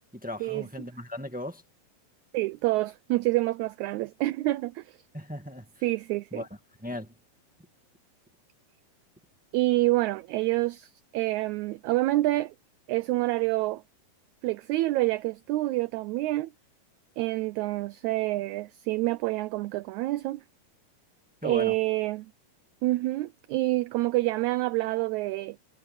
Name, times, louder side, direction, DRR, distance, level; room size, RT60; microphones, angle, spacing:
voice 1, 0.1-1.6 5.1-5.8 6.3-6.5 6.8-7.1 21.4-21.8, left 1 dB, 10° right, 0.4 m, -37 dB
voice 2, 2.3-5.0 5.8-6.4 9.5-12.5 12.9-13.8 14.4-16.5 17.2-20.4 21.4-22.3 22.8-25.6, right 18 dB, 85° right, 1.7 m, -27 dB
omnidirectional pair, 3.8 m